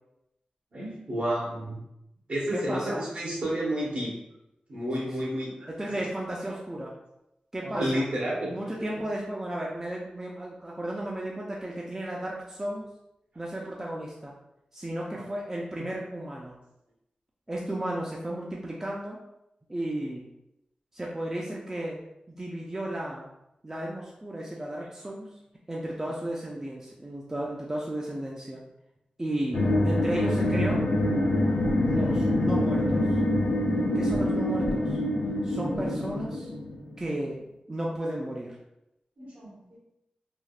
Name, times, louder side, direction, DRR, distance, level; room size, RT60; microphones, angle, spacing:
voice 1, 0.7-1.8 2.3-4.2 4.7-5.9 7.6-8.5 31.9-32.3 39.2-39.8, equal, 60° right, -5 dB, 1.0 m, -31 dB
voice 2, 2.5-3.0 5.0-5.3 5.7-6.9 7.5-8.0 8.5-12.8 13.4-14.3 14.7-16.6 17.5-19.2 19.7-20.3 20.9-22.0 22.3-23.3 23.6-25.3 25.7-28.6 29.2-30.8 31.8-33.2 33.9-35.0 35.4-36.5 37.0-37.4 37.7-38.6, right 1 dB, 20° right, -3 dB, 0.4 m, -34 dB
sound 1, 29.5-37.1, left 1 dB, 60° left, 0.4 m, -25 dB
3.3 x 2.3 x 2.3 m, 0.87 s
wide cardioid pair, 105°, 3 cm